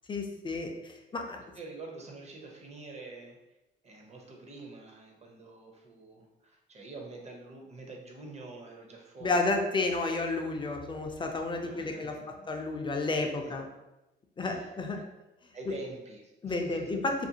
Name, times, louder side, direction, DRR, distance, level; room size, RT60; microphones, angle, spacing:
voice 1, 0.1-1.4 9.2-12.2 12.5-13.7 14.4-15.0 16.4-17.3, left 3 dB, 25° left, 3 dB, 0.4 m, -31 dB
voice 2, 1.5-3.4 3.8-9.5 11.6-12.5 13.2-13.5 14.4-15.0 15.5-16.9, right 3 dB, 35° right, 0 dB, 0.6 m, -46 dB
2.5 x 2.3 x 2.7 m, 1.0 s
cardioid pair, 90°, 20 cm